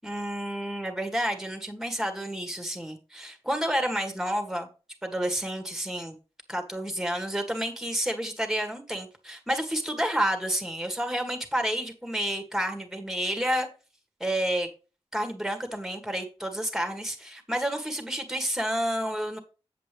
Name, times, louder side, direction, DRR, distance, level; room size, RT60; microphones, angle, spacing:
voice 1, 0.0-4.7 5.0-6.2 6.5-13.7 14.2-14.7 15.1-19.4, equal, 5° right, 1.8 m, -30 dB
7.9 x 7.7 x 3.4 m
wide cardioid pair, 80°, 11 cm